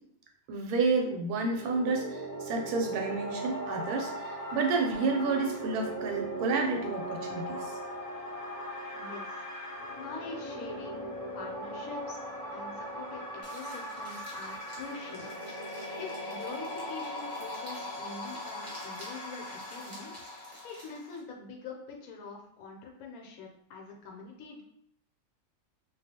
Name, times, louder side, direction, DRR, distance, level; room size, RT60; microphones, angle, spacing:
voice 1, 0.5-7.6, right 4 dB, 90° right, 2 dB, 1.1 m, -30 dB
sound 1, 1.4-21.2, equal, 25° left, 0.5 m, -39 dB
voice 2, 8.9-9.4 10.0-11.0 11.3-12.2 12.5-15.3 16.0-20.1 20.6-24.6, left 4 dB, 75° left, 1 dB, 1.0 m, -44 dB
sound 2, 13.4-21.2, equal, 30° right, 0.6 m, -52 dB
2.4 x 2.3 x 2.7 m, 0.70 s
omnidirectional pair, 1.6 m